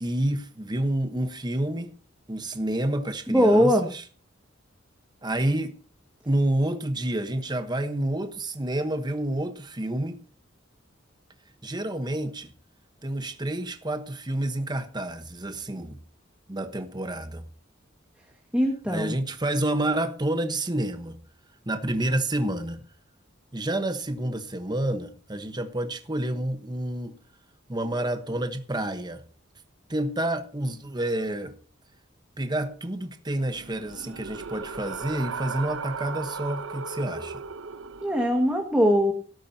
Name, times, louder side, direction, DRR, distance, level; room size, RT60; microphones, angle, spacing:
voice 1, 0.0-1.9 2.3-4.0 5.2-5.8 6.3-10.2 11.6-12.5 13.0-16.0 16.5-17.4 18.9-21.2 21.7-22.8 23.5-27.2 27.7-29.2 29.9-31.5 32.4-37.4, right 1 dB, 20° right, 1.1 m, -29 dB
voice 2, 3.3-3.9 18.5-19.1 38.0-39.1, equal, 5° right, 1.9 m, -21 dB
sound 1, 33.4-38.5, right 5 dB, 90° right, 0.9 m, -37 dB
17.5 x 13.0 x 2.8 m
head